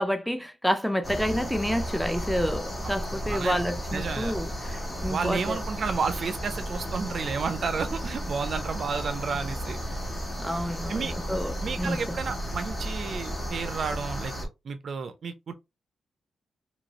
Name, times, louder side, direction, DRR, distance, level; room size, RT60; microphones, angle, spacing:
voice 1, 0.0-5.6 10.4-12.2, equal, ahead, 0.5 m, -29 dB
sound 1, 1.0-14.5, equal, 25° left, 1.2 m, -34 dB
voice 2, 3.2-3.6 3.9-4.3 5.1-9.8 10.9-11.1 11.6-14.3 14.6-15.5, right 5 dB, 55° right, 0.4 m, -31 dB
3.0 x 2.5 x 2.9 m
wide cardioid pair, 135°, 0 cm